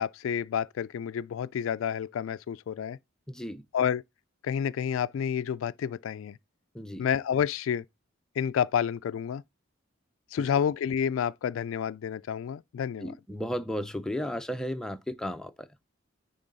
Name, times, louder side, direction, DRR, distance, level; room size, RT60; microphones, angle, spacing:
voice 1, 0.0-3.0 3.7-4.0 4.4-6.4 7.0-7.8 8.4-9.4 10.3-13.1, left 8 dB, 80° left, 0.3 m, -29 dB
voice 2, 3.3-3.6 6.7-7.1 13.0-15.7, equal, 5° left, 0.5 m, -34 dB
9.9 x 3.8 x 4.0 m
head